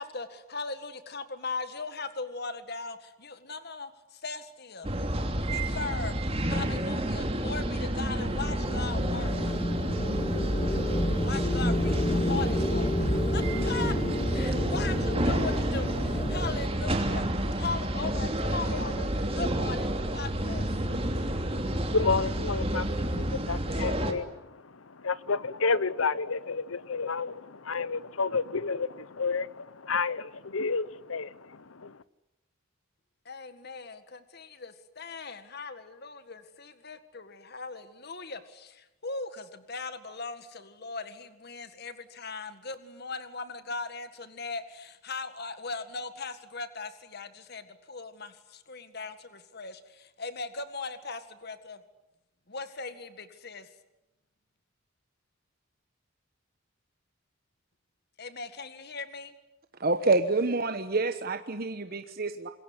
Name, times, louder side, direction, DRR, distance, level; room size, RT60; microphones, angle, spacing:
voice 1, 0.0-4.9 5.4-9.6 11.2-14.0 14.3-17.3 17.5-20.7 33.3-51.8 52.5-53.7 58.2-59.3, left 4 dB, 50° left, 11 dB, 1.8 m, -39 dB
sound 1, 4.8-24.1, right 1 dB, 30° right, 3.0 m, -30 dB
sound 2, 8.3-16.5, left 1 dB, 30° left, 2.5 m, -30 dB
voice 2, 20.9-32.0, left 4 dB, 90° left, 18 dB, 1.0 m, -31 dB
voice 3, 59.8-62.5, right 3 dB, 45° right, 8 dB, 1.2 m, -27 dB
26.5 x 22.5 x 9.8 m, 0.95 s
head